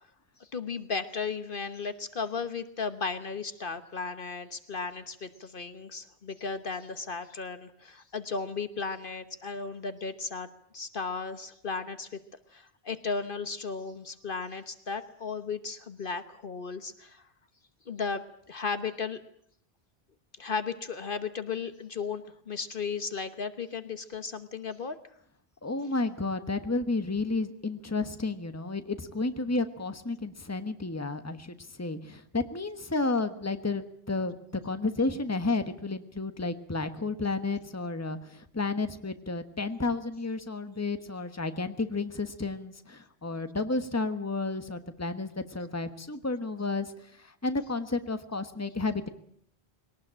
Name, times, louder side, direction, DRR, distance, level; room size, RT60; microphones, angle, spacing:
voice 1, 0.4-10.5 10.7-12.2 12.5-17.2 17.9-19.2 20.4-25.0, left 5 dB, 55° left, 11 dB, 1.3 m, -35 dB
voice 2, 25.6-46.9 47.2-49.1, left 3 dB, 15° left, 9 dB, 1.3 m, -32 dB
21.5 x 18.5 x 8.8 m, 0.67 s
omnidirectional pair, 1.1 m